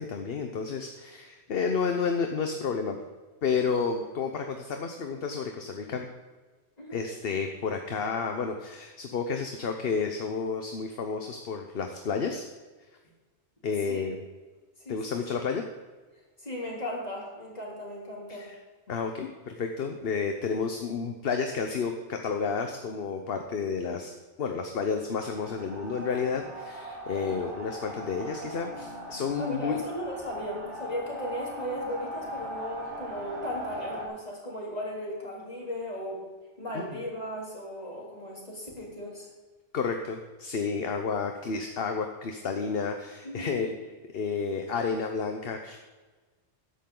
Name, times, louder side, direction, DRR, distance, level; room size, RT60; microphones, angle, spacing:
voice 1, 0.0-3.0 3.4-6.1 6.9-12.5 13.6-14.2 14.9-15.6 18.3-18.5 18.9-24.1 24.4-29.8 36.7-36.8 39.7-43.7 44.1-45.8, left 5 dB, 60° left, 5 dB, 1.1 m, -31 dB
voice 2, 6.8-7.1 13.9-14.1 14.8-15.2 16.4-18.5 27.1-27.5 29.4-36.3 36.6-39.3 43.2-43.7, equal, 35° left, -3 dB, 3.6 m, -37 dB
sound 1, 25.0-34.1, equal, 85° right, 2.6 m, -39 dB
14.0 x 11.0 x 3.9 m, 1.3 s
omnidirectional pair, 1.2 m